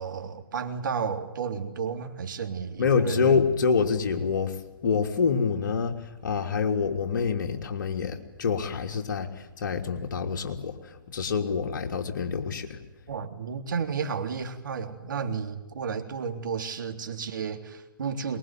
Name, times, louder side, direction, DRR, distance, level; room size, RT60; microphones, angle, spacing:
voice 1, 0.0-3.3 13.1-18.4, right 6 dB, 60° right, 6 dB, 3.5 m, -32 dB
voice 2, 2.8-4.5 4.8-12.8, left 5 dB, 55° left, 4 dB, 3.2 m, -26 dB
23.5 x 21.5 x 9.5 m, 0.99 s
figure-of-eight pair, 125°, 12 cm